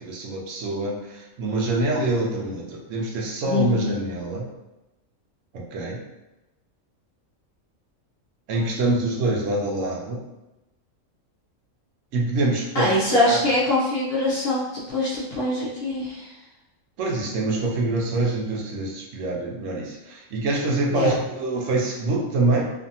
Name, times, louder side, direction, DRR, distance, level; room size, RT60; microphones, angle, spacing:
voice 1, 0.0-4.4 5.5-6.0 8.5-10.2 12.1-13.4 17.0-22.6, right 2 dB, 75° right, -1 dB, 0.9 m, -25 dB
voice 2, 3.5-4.0 12.7-16.5 20.9-21.1, left 2 dB, 60° left, -5 dB, 0.7 m, -24 dB
2.6 x 2.4 x 2.6 m, 0.98 s
omnidirectional pair, 1.4 m